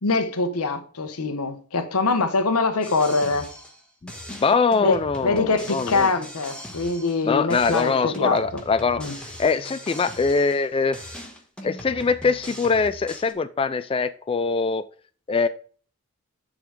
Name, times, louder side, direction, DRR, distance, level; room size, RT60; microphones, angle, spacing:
voice 1, 0.0-3.5 4.8-5.0 5.2-8.6 9.0-9.1, left 3 dB, 80° left, 1.0 m, -23 dB
sound 1, 2.8-7.2 7.5-10.7 10.9-13.3, equal, 5° left, 1.3 m, -40 dB
voice 2, 4.0-6.1 7.2-9.0 9.4-11.0 11.6-14.8 15.3-15.5, left 4 dB, 25° left, 0.3 m, -23 dB
10.0 x 3.9 x 4.7 m
head